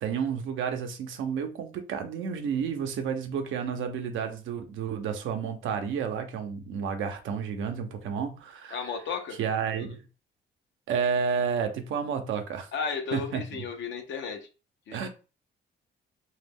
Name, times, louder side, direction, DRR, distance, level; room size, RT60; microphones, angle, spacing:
voice 1, 0.0-8.9 9.4-10.0 10.9-12.7 13.1-13.6 14.9-15.1, right 6 dB, 80° right, 0.6 m, -31 dB
voice 2, 8.7-9.4 9.8-9.9 12.7-14.5 14.9-15.0, left 5 dB, 65° left, 0.6 m, -34 dB
2.3 x 2.0 x 3.4 m
cardioid pair, 90°, 20 cm